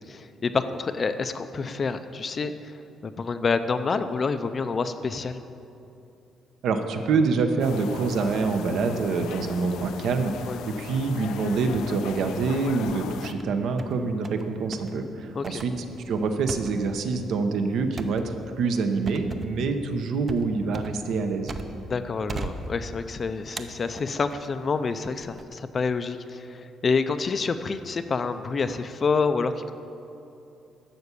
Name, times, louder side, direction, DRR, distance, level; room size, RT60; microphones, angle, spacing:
voice 1, 0.0-2.8 3.0-5.4 10.5-10.6 15.3-15.6 21.9-29.7, left 4 dB, 30° left, 10 dB, 0.4 m, -28 dB
voice 2, 6.6-21.6, right 4 dB, 65° right, 6 dB, 0.9 m, -26 dB
sound 1, 7.6-13.3, left 8 dB, 90° left, 0.5 m, -38 dB
sound 2, 12.9-13.5 13.8-14.4 14.7-14.9 15.4-21.9 22.3-23.1 23.6-24.5 25.0-25.4, right 3 dB, 25° right, 0.6 m, -38 dB
12.0 x 6.9 x 8.3 m, 2.7 s
cardioid pair, 175°, 0 cm